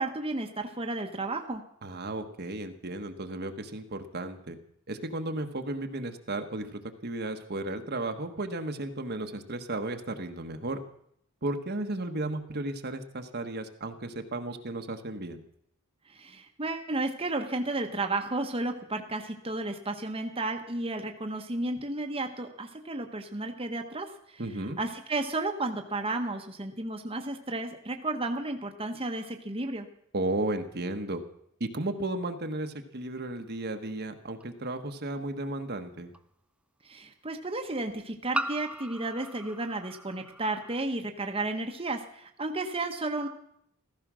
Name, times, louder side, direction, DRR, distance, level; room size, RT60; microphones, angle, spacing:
voice 1, 0.0-1.6 16.1-29.9 36.8-43.3, right 2 dB, 25° right, 4 dB, 1.2 m, -33 dB
voice 2, 1.8-4.6 4.9-10.8 11.4-15.4 24.4-24.8 30.1-31.2 31.6-36.1, right 2 dB, 45° right, 6 dB, 1.2 m, -34 dB
sound 1, 34.4-34.5 36.1-36.2 38.3-40.8, right 1 dB, 5° right, 0.5 m, -37 dB
15.0 x 14.5 x 6.2 m, 0.71 s
head